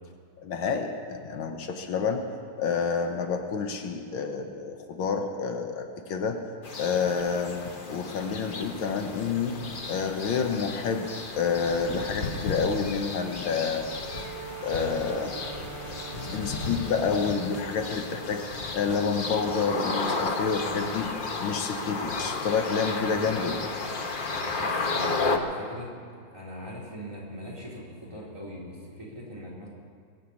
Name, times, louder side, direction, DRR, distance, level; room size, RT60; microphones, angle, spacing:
voice 1, 0.4-2.2 2.6-6.4 6.8-9.6 9.9-11.1 11.4-13.9 14.6-15.4 16.3-21.1 21.4-23.7, left 5 dB, 80° left, 5 dB, 1.9 m, -29 dB
sound 1, 6.6-25.4, left 3 dB, 40° left, 0.7 m, -33 dB
Wind instrument woodwind instrument, 14.0-17.5, right 6 dB, 60° right, 2.1 m, -42 dB
voice 2, 24.3-29.7, equal, 15° right, -5 dB, 4.0 m, -41 dB
22.5 x 7.5 x 8.5 m, 2.2 s
omnidirectional pair, 2.2 m